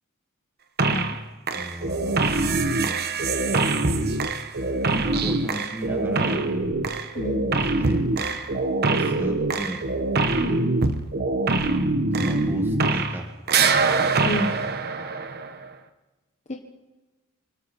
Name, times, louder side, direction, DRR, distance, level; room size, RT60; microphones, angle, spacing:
sound 1, 0.8-1.2 1.5-13.2 13.5-15.7, right 3 dB, 45° right, 1.1 m, -24 dB
voice 1, 0.9-1.2 7.1-7.4 10.4-10.7 14.2-14.5 16.5-16.6, left 1 dB, 30° left, 2 dB, 1.2 m, -29 dB
voice 2, 1.5-3.0 4.9-6.5 7.6-8.1 9.0-9.9 12.1-13.3, equal, 10° right, 3 dB, 1.3 m, -36 dB
25.5 x 13.0 x 4.2 m, 1.1 s
head